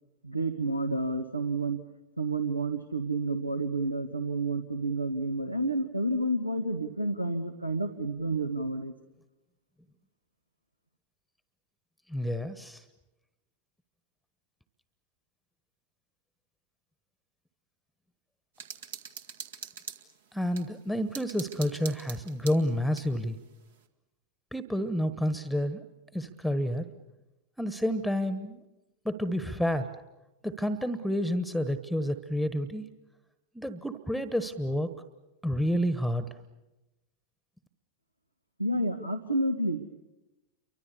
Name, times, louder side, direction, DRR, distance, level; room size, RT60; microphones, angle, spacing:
voice 1, 0.2-1.8 2.2-8.9 38.6-39.8, right 2 dB, 85° right, 8 dB, 1.4 m, -30 dB
voice 2, 12.1-12.8 20.3-23.4 24.5-25.8 26.1-26.9 27.6-28.6 29.0-29.9 30.4-32.8 33.5-34.9 35.4-36.2, equal, ahead, 13 dB, 1.3 m, -29 dB
sound 1, 18.6-20.7 21.1-23.1, right 6 dB, 65° right, 2.0 m, -43 dB
29.5 x 24.5 x 7.0 m, 1.0 s
figure-of-eight pair, 90°, 0 cm